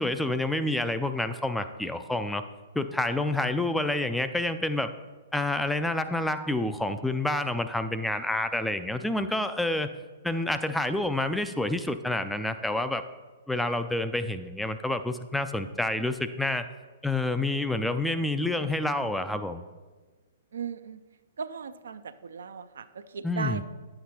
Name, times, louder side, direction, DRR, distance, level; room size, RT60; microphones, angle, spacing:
voice 1, 0.0-2.4 2.7-4.9 5.3-9.9 10.2-13.0 13.5-16.7 17.0-19.6 23.2-23.6, left 2 dB, 5° left, 9 dB, 0.3 m, -28 dB
voice 2, 20.5-21.0 21.4-23.6, right 6 dB, 70° right, 11 dB, 0.4 m, -37 dB
9.9 x 7.8 x 2.8 m, 1.3 s
hypercardioid pair, 120°, 0 cm